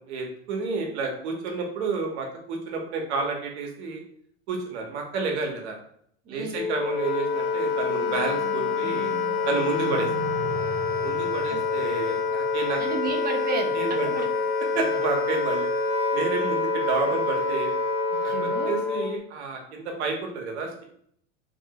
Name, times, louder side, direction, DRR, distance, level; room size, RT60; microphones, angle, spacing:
voice 1, 0.1-4.0 4.5-5.8 6.3-9.1 9.4-10.1 11.0-12.8 13.7-14.1 14.7-15.7 16.1-17.7 18.2-18.3 18.6-20.8, right 4 dB, 75° right, 2 dB, 1.0 m, -30 dB
voice 2, 6.3-6.7 11.4-11.6 12.8-14.3 14.7-15.0 18.1-18.8, right 5 dB, 25° right, 2 dB, 0.7 m, -33 dB
Wind instrument woodwind instrument, 6.5-19.2, left 4 dB, 40° left, 0.8 m, -26 dB
sound 1, 7.5-12.8, right 1 dB, 15° left, 0.5 m, -39 dB
2.8 x 2.6 x 2.9 m, 0.65 s
hypercardioid pair, 100°, 34 cm